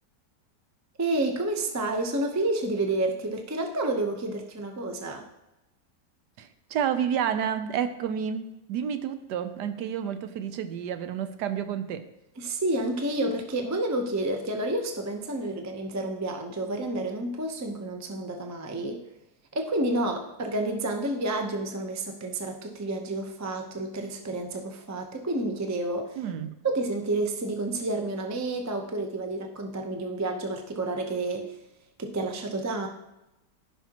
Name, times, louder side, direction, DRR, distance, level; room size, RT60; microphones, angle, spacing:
voice 1, 1.0-5.3 12.4-19.0 19.5-26.2 26.6-31.6 32.0-32.9, right 2 dB, 25° right, 4 dB, 0.3 m, -30 dB
voice 2, 6.4-12.1 26.2-26.5, right 8 dB, 75° right, 10 dB, 1.2 m, -30 dB
14.5 x 5.7 x 2.9 m, 0.94 s
omnidirectional pair, 1.8 m